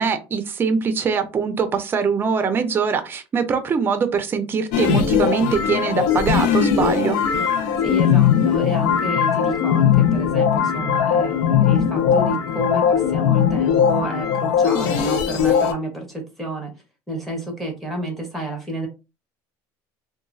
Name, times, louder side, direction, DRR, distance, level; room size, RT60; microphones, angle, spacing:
voice 1, 0.0-7.2, right 6 dB, 25° right, 0.5 m, -22 dB
sound 1, 4.7-15.7, left 8 dB, 80° left, 0.5 m, -19 dB
voice 2, 7.8-16.7 17.1-18.9, right 1 dB, ahead, 1.0 m, -30 dB
2.9 x 2.3 x 2.6 m
cardioid pair, 140°, 9 cm